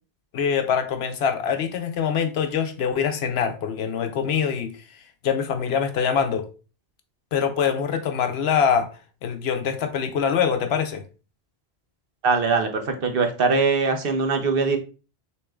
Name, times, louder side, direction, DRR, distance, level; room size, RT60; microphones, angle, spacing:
voice 1, 0.3-4.8 5.2-6.5 7.3-8.9 9.2-11.0, left 7 dB, 75° left, 0.9 m, -24 dB
voice 2, 12.2-14.8, right 4 dB, 60° right, 0.9 m, -22 dB
6.2 x 3.0 x 2.3 m
omnidirectional pair, 1.1 m